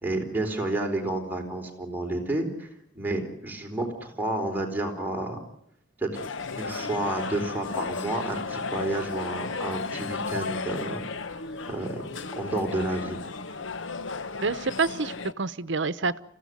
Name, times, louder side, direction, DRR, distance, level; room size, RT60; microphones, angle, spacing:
voice 1, 0.0-2.7 2.9-5.4 6.0-6.3 6.6-11.0 11.3-13.2, right 2 dB, 10° right, 1 dB, 4.2 m, -30 dB
sound 1, 6.1-15.3, left 4 dB, 80° left, 0.9 m, -34 dB
voice 2, 14.4-16.2, right 4 dB, 70° right, 15 dB, 1.0 m, -28 dB
28.0 x 16.0 x 9.6 m, 0.78 s
head